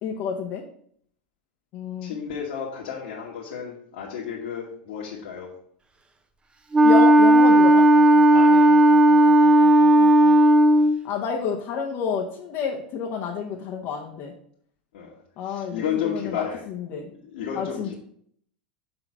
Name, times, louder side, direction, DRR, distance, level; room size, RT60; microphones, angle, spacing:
voice 1, 0.0-0.6 1.7-2.2 6.8-7.9 9.9-10.1 11.0-14.3 15.4-17.1 17.5-17.9, left 6 dB, 50° left, 0 dB, 0.8 m, -30 dB
voice 2, 2.0-5.5 8.3-8.7 14.9-15.1 15.4-16.6 16.9-17.9, left 7 dB, 70° left, -4 dB, 1.4 m, -32 dB
Wind instrument woodwind instrument, 6.7-11.0, right 1 dB, 20° right, 0.7 m, -14 dB
6.1 x 3.8 x 5.9 m, 0.65 s
hypercardioid pair, 100°, 5 cm